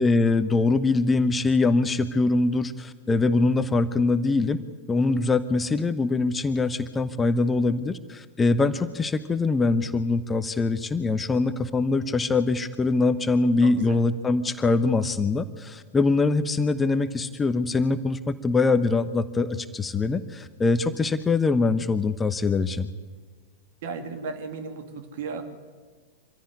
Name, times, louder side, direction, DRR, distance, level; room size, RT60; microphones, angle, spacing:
voice 1, 0.0-4.6 4.9-22.9, left 3 dB, 15° left, 11 dB, 1.0 m, -23 dB
voice 2, 13.6-14.0 23.8-25.4, right 4 dB, 55° right, 7 dB, 2.9 m, -35 dB
25.0 x 16.0 x 9.7 m, 1.5 s
figure-of-eight pair, 90°, 0 cm